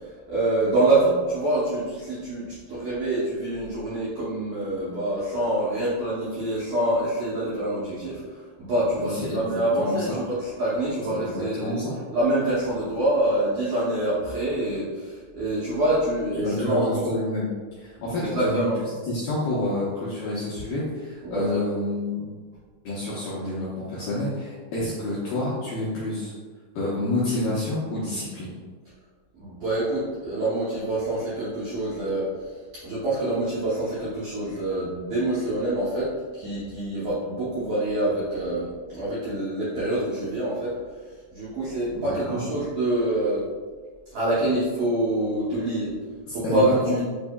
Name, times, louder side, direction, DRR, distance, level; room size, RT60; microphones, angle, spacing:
voice 1, 0.0-11.8 12.1-17.0 18.2-18.7 21.2-21.6 29.4-32.5 32.8-40.7 41.3-43.5 44.1-45.9 46.3-47.0, right 1 dB, 80° right, -10 dB, 1.7 m, -26 dB
voice 2, 9.0-10.2 11.1-11.9 16.4-18.7 19.1-22.2 22.9-26.3 26.8-28.6 41.9-42.4 46.3-47.0, left 1 dB, 80° left, -8 dB, 1.9 m, -28 dB
7.0 x 2.7 x 2.2 m, 1.5 s
omnidirectional pair, 4.7 m